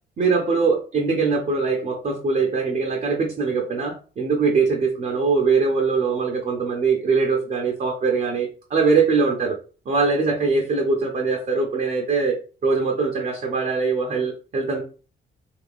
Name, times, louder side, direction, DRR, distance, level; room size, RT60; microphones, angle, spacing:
voice 1, 0.2-9.6 9.9-12.4 12.6-14.8, right 4 dB, 40° right, 0 dB, 0.7 m, -22 dB
2.6 x 2.5 x 3.5 m, 0.38 s
cardioid pair, 90°, 20 cm